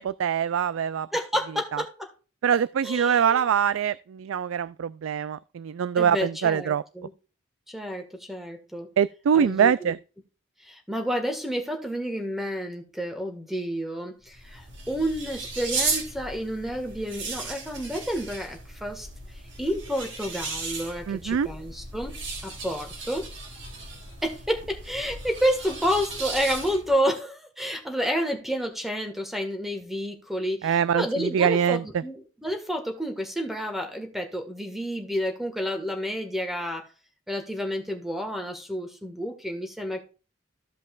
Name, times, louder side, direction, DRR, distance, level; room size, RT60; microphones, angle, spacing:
voice 1, 0.0-1.1 1.7-1.8 2.4-6.8 9.0-10.0 21.1-21.5 30.6-32.0, right 8 dB, 85° right, 0.3 m, -24 dB
voice 2, 1.1-2.1 2.8-3.4 6.0-7.1 7.7-8.9 9.3-9.9 10.6-19.1 19.6-22.1 22.4-23.3 24.2-36.8 37.3-40.0, equal, ahead, 1.7 m, -30 dB
sound 1, 14.3-27.0, right 3 dB, 65° right, 3.7 m, -36 dB
15.0 x 5.3 x 2.4 m
head